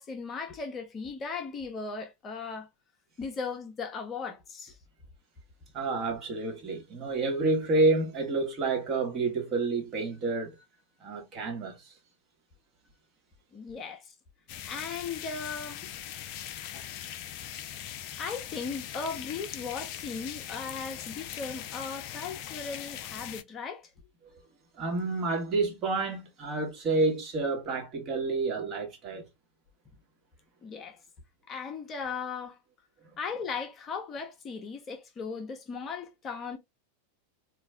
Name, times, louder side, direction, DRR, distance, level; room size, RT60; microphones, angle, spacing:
voice 1, 0.0-2.7 3.2-4.8 13.5-14.1 14.6-15.9 18.2-23.9 30.6-31.0 31.5-32.6 33.2-36.6, left 5 dB, 25° left, 0.9 m, -37 dB
voice 2, 5.7-10.6 11.0-11.9 24.8-29.3, right 3 dB, 35° right, 1.6 m, -29 dB
sound 1, 14.5-23.4, left 11 dB, 45° left, 0.5 m, -41 dB
4.2 x 2.8 x 3.5 m
figure-of-eight pair, 90°, 0 cm